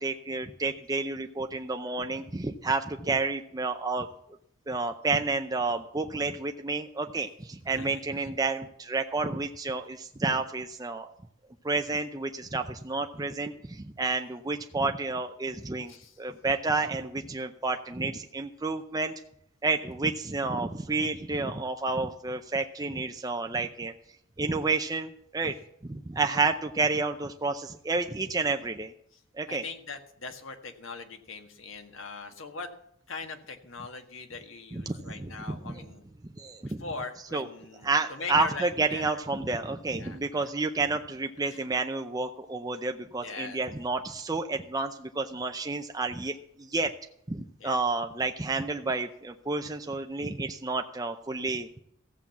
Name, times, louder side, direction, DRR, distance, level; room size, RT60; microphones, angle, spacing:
voice 1, 0.0-4.1 4.7-11.1 11.6-19.1 19.6-23.9 24.4-25.6 25.8-28.9 29.4-29.6 34.7-35.9 36.4-36.8 37.3-37.5 37.8-46.9 47.3-51.7, right 3 dB, 20° right, 5 dB, 0.6 m, -30 dB
voice 2, 15.9-16.2 29.5-32.7 33.1-36.0 36.6-39.2 39.5-39.6 40.0-40.5 41.4-41.6 43.2-43.6 47.6-47.8, left 4 dB, 75° left, 6 dB, 1.6 m, -41 dB
15.0 x 7.6 x 7.1 m, 0.73 s
head